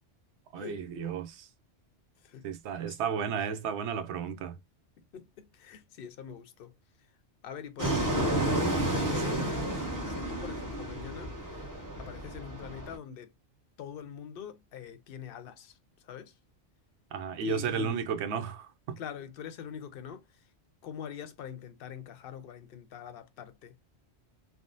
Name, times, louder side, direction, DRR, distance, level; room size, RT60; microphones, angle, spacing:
voice 1, 0.5-1.5 2.4-4.6 7.8-8.0 9.3-9.4 17.1-19.0, right 6 dB, 75° right, 0.9 m, -33 dB
voice 2, 5.1-6.7 7.4-8.4 9.1-9.7 10.1-11.7 12.0-13.3 13.8-15.8 16.0-16.3 17.4-18.0 19.0-20.3 20.8-23.8, left 8 dB, 60° left, 0.7 m, -44 dB
Fixed-wing aircraft airplane, 7.8-13.0, right 1 dB, 20° right, 0.8 m, -31 dB
3.5 x 2.0 x 2.5 m
omnidirectional pair, 1.2 m